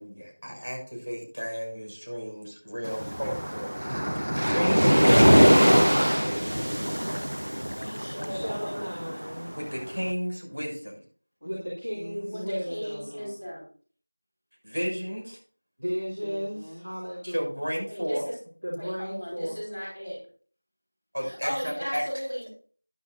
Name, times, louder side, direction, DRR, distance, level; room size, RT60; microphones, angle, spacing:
voice 1, 0.0-3.8 4.1-6.0 9.6-10.9 14.6-15.4 17.2-18.2 21.1-22.0, equal, 70° right, 0 dB, 6.5 m, -32 dB
Waves surf, 2.8-10.0, equal, 35° right, 0.6 m, -22 dB
voice 2, 6.1-7.5 8.1-8.7 11.4-11.5 11.9-12.3 12.7-12.8 13.1-13.4 16.2-16.9, equal, 30° left, 0 dB, 1.8 m, -46 dB
voice 3, 7.7-9.0 12.3-13.6 17.9-18.3 18.8-20.2 21.2-22.5, equal, 10° left, -12 dB, 4.1 m, -36 dB
voice 4, 8.2-9.5 11.4-13.1 15.8-17.5 18.6-19.6, equal, 10° right, -13 dB, 1.7 m, -34 dB
15.0 x 9.6 x 2.6 m, 0.42 s
figure-of-eight pair, 180°, 0 cm